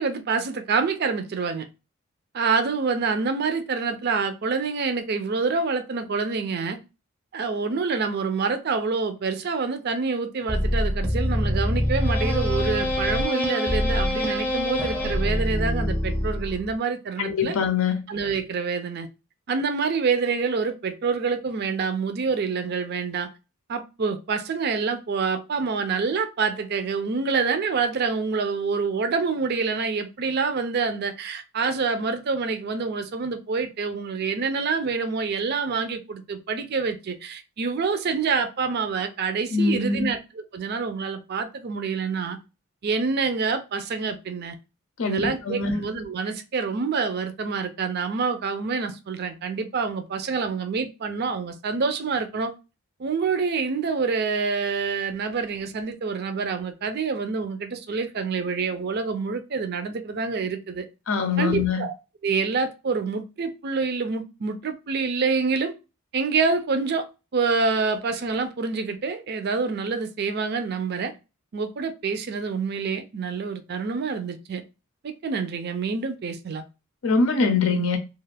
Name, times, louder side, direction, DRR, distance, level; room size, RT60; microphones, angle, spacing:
voice 1, 0.0-1.7 2.3-6.8 7.3-17.6 18.1-19.1 19.5-23.3 23.7-40.2 40.5-42.4 42.8-44.6 45.0-52.5 53.0-60.9 61.4-61.9 62.2-65.7 66.1-67.1 67.3-71.1 71.5-74.6 75.0-76.6, right 4 dB, 50° right, 0.4 m, -27 dB
sound 1, 10.5-16.7, equal, 10° left, 0.6 m, -25 dB
voice 2, 17.2-18.0 39.5-40.1 45.0-45.8 61.1-61.8 77.0-78.0, left 4 dB, 75° left, 0.5 m, -23 dB
2.4 x 2.3 x 3.3 m
head